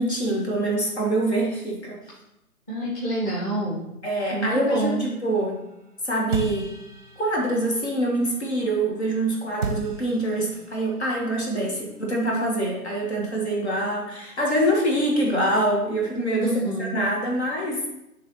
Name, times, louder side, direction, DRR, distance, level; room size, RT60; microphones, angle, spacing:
voice 1, 0.0-2.0 4.0-5.6 6.0-6.7 7.2-17.9, right 1 dB, 45° left, -2 dB, 1.6 m, -25 dB
voice 2, 2.7-3.8 4.3-5.0 16.4-17.0, right 1 dB, 15° left, -9 dB, 1.4 m, -27 dB
sound 1, 4.7-9.2 9.6-13.0, right 3 dB, 30° right, 0.8 m, -37 dB
9.0 x 3.4 x 4.2 m, 0.88 s
figure-of-eight pair, 145°, 46 cm